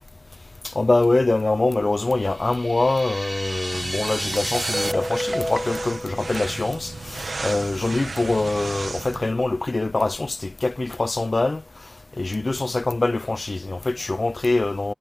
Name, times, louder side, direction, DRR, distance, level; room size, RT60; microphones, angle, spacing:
voice 1, 0.8-11.6 12.2-14.9, left 2 dB, 50° left, 0.8 m, -24 dB
sound 1, 2.2-4.9, right 1 dB, 25° right, 0.9 m, -31 dB
sound 2, 3.7-9.3, right 3 dB, 75° right, 1.6 m, -35 dB
Guitar, 4.3-7.1, equal, 10° left, 2.9 m, -31 dB
wide cardioid pair, 80°, 0 cm